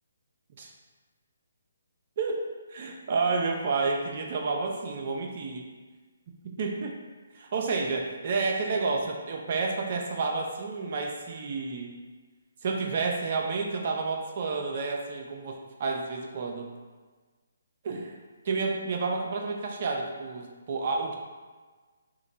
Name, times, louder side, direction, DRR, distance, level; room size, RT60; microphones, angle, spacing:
voice 1, 2.2-5.7 6.6-7.0 7.3-11.9 12.6-16.7 17.8-18.1 18.5-21.2, right 4 dB, 45° right, 1 dB, 0.5 m, -30 dB
2.9 x 2.2 x 3.8 m, 1.4 s
figure-of-eight pair, 140°, 0 cm